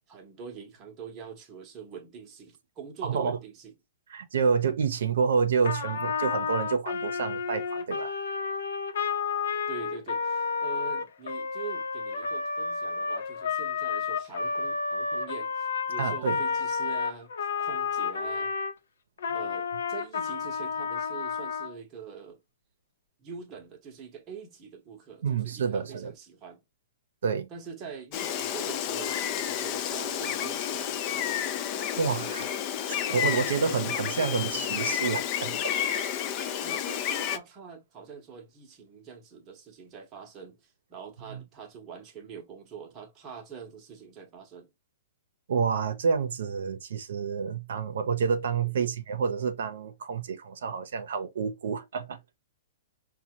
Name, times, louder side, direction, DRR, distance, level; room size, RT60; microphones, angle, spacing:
voice 1, 0.0-3.7 9.7-18.5 19.3-22.4 23.2-26.6 27.5-31.4 36.6-44.7 48.6-48.9, right 6 dB, 20° right, 0.8 m, -44 dB
voice 2, 3.0-3.4 4.1-8.1 16.0-16.4 25.2-26.1 27.2-27.5 32.0-32.5 32.9-36.1 36.5-36.7 41.3-41.4 45.5-52.2, right 6 dB, 70° right, 0.6 m, -29 dB
Trumpet, 5.6-18.7 19.2-21.7, left 5 dB, 80° left, 0.7 m, -31 dB
Gull seagull, 28.1-37.4, left 10 dB, 25° left, 0.3 m, -30 dB
5.2 x 2.2 x 2.7 m
hypercardioid pair, 170°, 0 cm